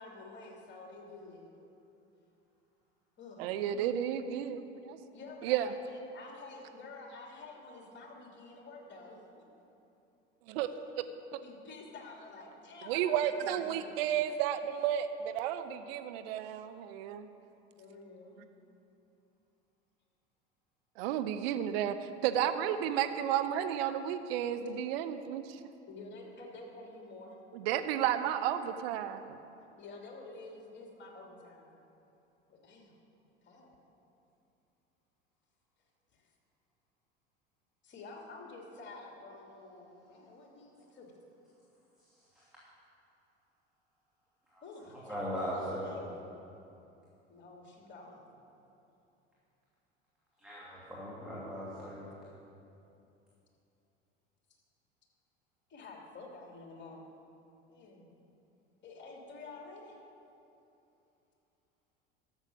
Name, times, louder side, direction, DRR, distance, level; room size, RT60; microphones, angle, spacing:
voice 1, 0.0-1.5 3.2-3.5 5.1-9.4 10.9-11.0 11.4-13.8 17.7-18.4 25.9-27.4 29.8-31.7 32.5-33.0 33.4-33.8 36.1-36.3 37.8-41.1 44.6-46.2 47.3-48.3 55.7-57.1 57.7-58.1 58.8-60.0, left 3 dB, 35° left, 0 dB, 2.9 m, -49 dB
voice 2, 3.4-5.0 5.4-5.7 10.5-10.7 12.9-17.3 21.0-22.0 22.2-25.6 27.5-29.4, right 10 dB, 65° right, 10 dB, 0.7 m, -32 dB
voice 3, 45.1-45.9 50.4-52.1, equal, ahead, -8 dB, 3.0 m, -39 dB
12.5 x 7.3 x 6.7 m, 2.8 s
hypercardioid pair, 80°, 33 cm